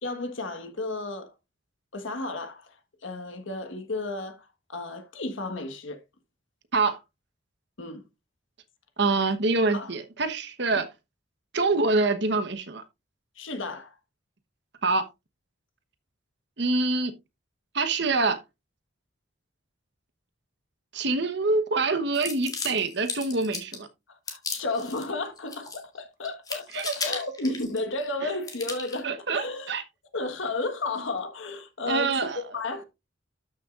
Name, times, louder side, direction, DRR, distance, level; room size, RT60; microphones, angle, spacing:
voice 1, 0.0-1.3 1.9-2.7 3.0-6.0 7.8-8.0 9.7-9.9 10.7-10.8 13.4-14.0 24.1-29.7 30.1-32.9, left 2 dB, 70° left, 1.4 m, -33 dB
voice 2, 9.0-10.9 11.5-12.8 14.8-15.1 16.6-17.1 17.7-18.4 20.9-23.9 26.7-26.9 28.2-28.3 29.0-29.8 31.9-32.4, right 3 dB, 55° right, 1.1 m, -25 dB
sound 1, 22.1-23.8 24.3-25.0 25.4-26.0 26.2-28.1 28.4-29.0, left 4 dB, 20° left, 2.0 m, -35 dB
13.0 x 6.4 x 2.5 m
head